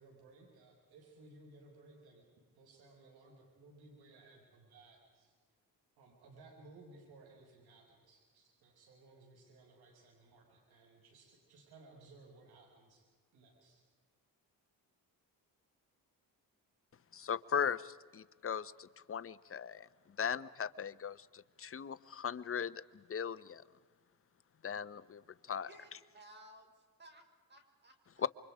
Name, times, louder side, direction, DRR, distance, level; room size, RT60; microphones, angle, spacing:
voice 1, 0.0-2.3 2.5-5.3 6.0-13.0 13.3-13.8, right 2 dB, 90° right, 0 dB, 6.0 m, -60 dB
voice 2, 17.1-19.9 20.2-23.6 24.6-25.2 25.5-25.7 28.2-28.3, left 7 dB, 35° left, 14 dB, 0.9 m, -38 dB
voice 3, 25.7-28.3, right 1 dB, 30° right, 4 dB, 5.3 m, -59 dB
28.5 x 24.5 x 5.0 m, 1.5 s
cardioid pair, 95°, 37 cm